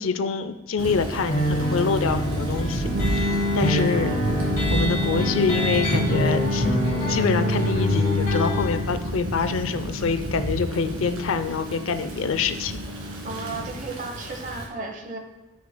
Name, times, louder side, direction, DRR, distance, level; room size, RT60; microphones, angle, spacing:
voice 1, 0.0-4.1 4.7-12.8, left 5 dB, 85° left, 11 dB, 0.5 m, -26 dB
Thunder / Rain, 0.8-14.7, equal, 90° right, 2.1 m, -31 dB
sound 1, 1.3-8.8, equal, 35° left, 1.8 m, -26 dB
sound 2, 2.8-13.7, left 2 dB, 65° right, 0.5 m, -31 dB
voice 2, 13.2-15.2, right 3 dB, 40° right, 4 dB, 1.0 m, -34 dB
13.5 x 6.0 x 2.2 m, 1.2 s
head